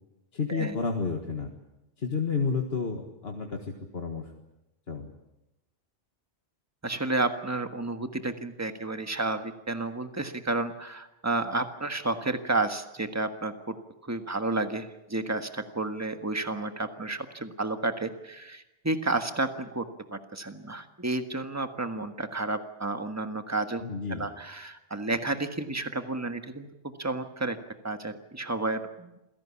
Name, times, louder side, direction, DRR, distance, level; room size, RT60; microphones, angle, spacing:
voice 1, 0.3-1.5 2.0-4.3 4.9-5.1 23.8-24.3, left 4 dB, 70° left, 3 dB, 2.0 m, -31 dB
voice 2, 6.8-13.7 14.0-19.8 20.1-23.8 24.1-26.7 27.0-27.6 27.8-29.2, right 2 dB, 15° right, 7 dB, 1.5 m, -31 dB
27.5 x 17.0 x 8.7 m, 0.97 s
omnidirectional pair, 1.1 m